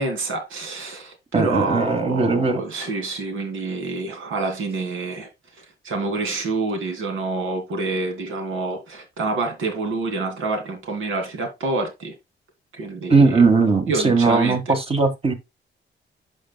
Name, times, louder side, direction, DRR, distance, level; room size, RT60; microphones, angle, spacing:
voice 1, 0.0-5.3 5.5-12.1 12.7-13.5 13.9-14.7, right 3 dB, 80° right, 2.6 m, -27 dB
voice 2, 1.3-2.6 13.1-15.3, right 4 dB, 30° right, 1.5 m, -18 dB
11.5 x 5.3 x 2.2 m
cardioid pair, 110°, 20 cm